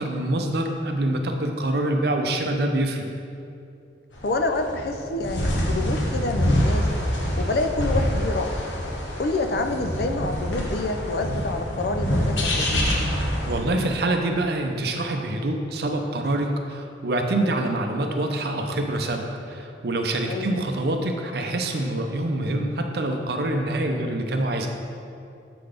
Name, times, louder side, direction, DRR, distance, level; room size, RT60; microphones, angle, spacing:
voice 1, 0.0-3.1 13.1-24.7, right 1 dB, 55° right, 4 dB, 0.6 m, -26 dB
sound 1, 4.1-13.6, equal, 85° left, 1.1 m, -26 dB
voice 2, 4.2-6.9 7.4-8.6 9.2-12.9 20.2-20.6, left 2 dB, 55° left, 6 dB, 0.4 m, -27 dB
6.7 x 3.9 x 5.0 m, 2.5 s
head